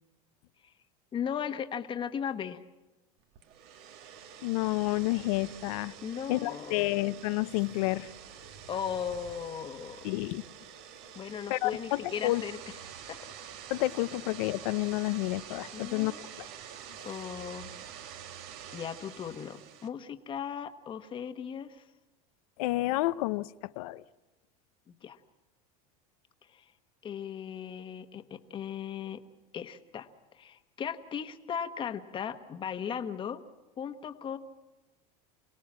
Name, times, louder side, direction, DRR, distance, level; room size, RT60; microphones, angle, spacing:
voice 1, 1.1-2.6 6.0-6.8 8.7-10.1 11.1-12.6 13.1-13.2 15.7-16.3 17.0-17.7 18.7-21.8 24.9-25.2 26.5-26.7 27.0-29.2 29.5-33.4 33.8-34.4, left 8 dB, 25° left, 8 dB, 1.3 m, -37 dB
sound 1, 3.3-19.9, right 8 dB, 60° right, 1.8 m, -47 dB
voice 2, 4.4-5.9 6.3-8.1 10.0-10.4 11.5-12.4 13.7-16.5 22.6-24.0, left 19 dB, 75° left, 16 dB, 0.8 m, -30 dB
28.0 x 18.5 x 7.5 m, 1.1 s
supercardioid pair, 140°, 19 cm